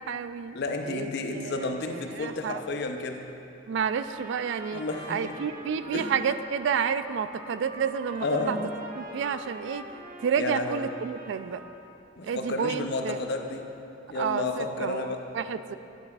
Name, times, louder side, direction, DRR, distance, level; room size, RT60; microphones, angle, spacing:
voice 1, 0.0-0.6 0.9-2.6 3.7-4.8 5.1-8.6 9.0-9.9 10.2-11.6 12.2-13.2 14.1-15.1 15.3-15.8, right 7 dB, 65° right, 12 dB, 0.3 m, -30 dB
voice 2, 0.5-3.3 4.7-5.4 5.9-6.1 8.2-8.7 10.4-10.8 12.2-13.7 14.1-15.3, left 2 dB, 60° left, 4 dB, 0.6 m, -31 dB
Trumpet, 3.8-11.9, right 1 dB, 45° right, 0.8 m, -45 dB
11.5 x 8.6 x 2.3 m, 2.8 s
head